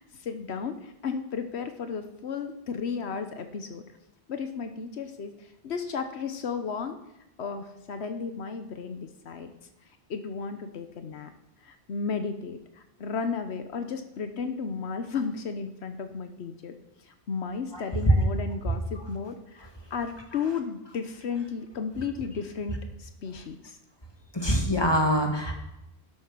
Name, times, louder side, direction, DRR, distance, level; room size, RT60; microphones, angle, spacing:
voice 1, 0.0-3.8 4.3-7.0 7.4-9.5 10.1-11.3 11.6-16.7 17.1-23.8, left 5 dB, 85° left, 8 dB, 1.2 m, -34 dB
voice 2, 24.3-25.5, equal, 25° left, 1 dB, 2.1 m, -23 dB
12.0 x 7.7 x 6.1 m, 0.90 s
omnidirectional pair, 1.1 m